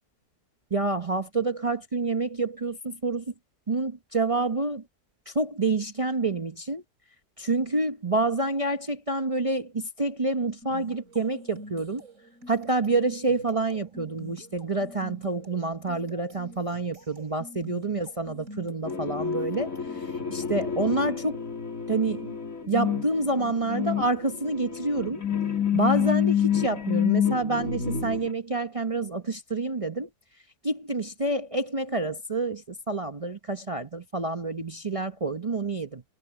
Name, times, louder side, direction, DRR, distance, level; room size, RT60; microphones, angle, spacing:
voice 1, 0.7-3.2 3.7-4.8 5.3-6.8 7.4-12.0 12.5-21.4 21.9-22.4 22.7-25.2 25.7-30.1 30.6-36.0, right 2 dB, 30° right, 0.7 m, -28 dB
sound 1, 10.6-20.9, equal, 50° right, 6.2 m, -47 dB
sound 2, 18.9-28.3, left 8 dB, 55° left, 2.9 m, -28 dB
omnidirectional pair, 1.7 m